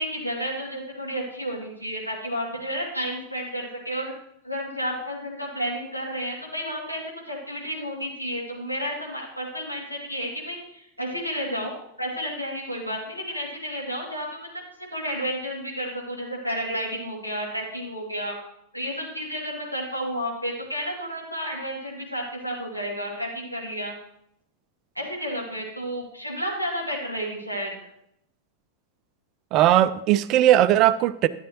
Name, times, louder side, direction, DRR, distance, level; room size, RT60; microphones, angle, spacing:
voice 1, 0.0-4.1 4.4-14.5 14.9-18.3 18.7-23.9 25.0-27.7, equal, 90° left, -2 dB, 2.4 m, -31 dB
voice 2, 29.5-31.3, right 13 dB, 40° right, 14 dB, 0.4 m, -18 dB
12.0 x 9.0 x 3.0 m, 0.75 s
figure-of-eight pair, 90°, 0 cm